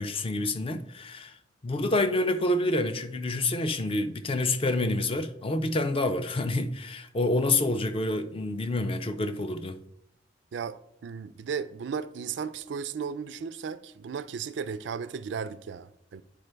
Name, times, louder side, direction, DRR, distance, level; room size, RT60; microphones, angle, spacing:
voice 1, 0.0-1.4 1.6-9.8, left 2 dB, 30° left, 0.4 m, -28 dB
voice 2, 10.5-16.2, right 6 dB, 70° right, 0.4 m, -35 dB
9.1 x 4.4 x 3.3 m
head